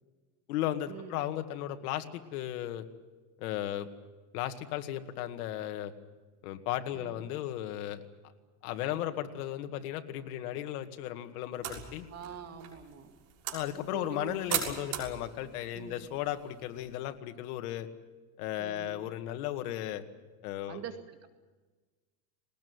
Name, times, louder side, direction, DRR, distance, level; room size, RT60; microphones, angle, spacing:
voice 1, 0.5-2.9 3.4-3.9 4.3-5.9 6.4-8.0 8.6-12.1 13.5-17.9 18.4-20.0 20.4-20.8, left 12 dB, 80° left, 7 dB, 2.1 m, -35 dB
sound 1, 11.5-17.1, right 9 dB, 70° right, 6.6 m, -40 dB
voice 2, 12.1-13.1 13.9-14.6 15.7-16.0 18.6-19.0 20.7-21.3, right 8 dB, 35° right, 6 dB, 2.1 m, -44 dB
21.0 x 19.5 x 9.7 m, 1.3 s
supercardioid pair, 150°, 44 cm